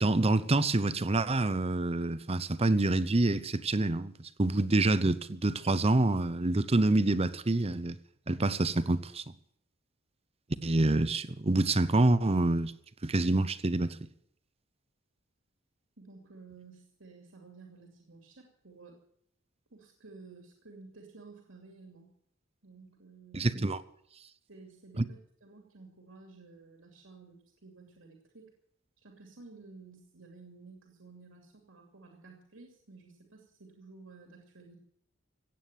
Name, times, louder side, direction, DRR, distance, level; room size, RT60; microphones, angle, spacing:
voice 1, 0.0-8.0 8.3-9.2 10.6-12.7 13.0-14.0 23.3-23.8 25.0-25.1, right 2 dB, 30° right, 0.8 m, -27 dB
voice 2, 16.0-19.0 19.7-22.1 22.6-23.5 24.5-28.5 29.0-34.8, right 3 dB, 75° right, 2.7 m, -53 dB
17.0 x 8.8 x 9.2 m
head